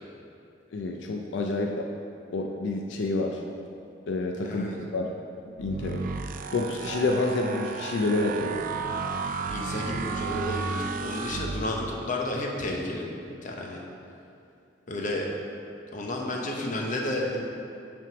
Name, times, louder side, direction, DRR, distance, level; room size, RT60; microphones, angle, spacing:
voice 1, 0.7-1.9 2.3-3.4 4.1-5.1 5.6-6.0 6.5-8.6, left 2 dB, 80° left, 1 dB, 0.4 m, -28 dB
voice 2, 4.4-4.8 9.5-13.8 14.9-15.3 15.9-17.4, left 1 dB, 45° left, 0 dB, 0.8 m, -32 dB
sound 1, 5.6-12.1, right 4 dB, 50° right, 0.3 m, -33 dB
5.5 x 3.6 x 5.9 m, 2.5 s
head